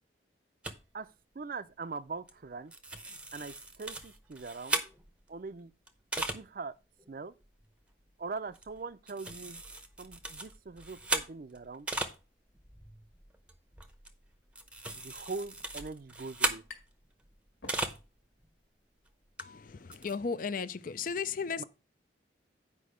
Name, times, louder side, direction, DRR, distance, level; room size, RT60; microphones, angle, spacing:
sound 1, 0.6-0.8 2.3-2.4 2.7-5.3 5.9-6.4 7.0-7.1 7.4-7.6 8.5-8.8 9.1-12.2 12.5-18.1 18.4-18.5 19.4-19.5 19.7-20.2, right 2 dB, 5° right, 0.7 m, -37 dB
voice 1, 1.3-2.7 3.3-4.8 5.3-5.7 6.2-6.7 7.1-7.3 8.2-9.6 10.0-11.9 14.9-16.6 21.6-21.7, right 4 dB, 50° right, 0.5 m, -41 dB
sound 2, 16.7-17.1 17.4-18.3, left 3 dB, 80° left, 1.8 m, -52 dB
voice 2, 19.4-21.6, left 5 dB, 45° left, 0.5 m, -35 dB
8.3 x 5.1 x 5.0 m
head